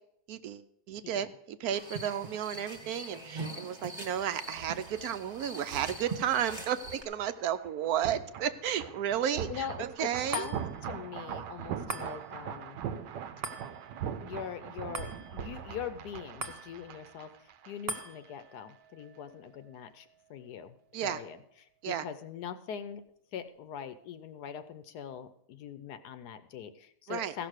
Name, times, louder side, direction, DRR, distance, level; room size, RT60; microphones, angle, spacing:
voice 1, 0.3-10.5 20.9-21.2 21.8-22.1 27.1-27.3, right 9 dB, 70° right, 11 dB, 1.0 m, -33 dB
sound 1, 1.7-7.0, right 2 dB, 15° right, 1.2 m, -42 dB
sound 2, 4.2-18.0 18.2-18.4, right 8 dB, 85° right, 1.4 m, -42 dB
voice 2, 9.5-12.8 14.2-17.3 17.7-20.8 21.0-23.0 23.3-27.5, left 8 dB, 70° left, 11 dB, 1.2 m, -42 dB
sound 3, 10.3-22.9 23.3-23.4, right 3 dB, 40° right, 1.0 m, -46 dB
15.5 x 6.0 x 6.4 m, 0.72 s
omnidirectional pair, 1.9 m